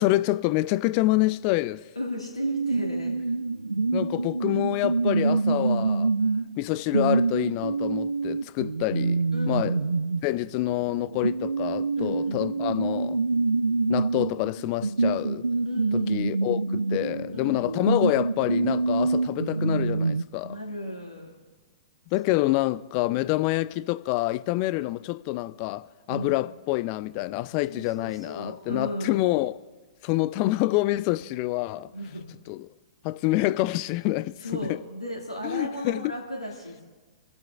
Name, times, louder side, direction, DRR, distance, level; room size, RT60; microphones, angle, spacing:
voice 1, 0.0-1.8 3.9-6.1 6.6-9.8 10.2-13.2 13.9-15.4 15.9-20.6 22.1-29.6 30.0-31.9 32.5-32.7 33.0-34.3 34.7-34.8 35.4-36.1, left 18 dB, 35° left, 0.4 m, -27 dB
voice 2, 2.0-3.1 9.3-9.9 12.0-12.5 15.7-16.5 17.3-17.7 20.4-21.3 26.1-26.4 27.7-29.2 31.9-32.3 34.4-36.8, left 1 dB, 85° left, 1.9 m, -35 dB
sound 1, 2.4-20.2, right 3 dB, 85° right, 0.3 m, -26 dB
29.5 x 13.5 x 2.3 m
figure-of-eight pair, 110°, 3 cm